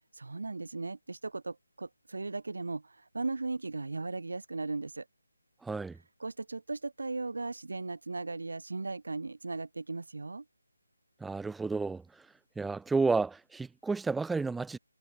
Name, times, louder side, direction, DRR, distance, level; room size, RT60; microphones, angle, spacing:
voice 1, 0.1-5.0 6.2-10.4, right 3 dB, 60° right, 5.1 m, -37 dB
voice 2, 5.6-6.0 11.2-12.0 12.6-14.8, right 4 dB, 5° right, 0.9 m, -31 dB
figure-of-eight pair, 150°, 0 cm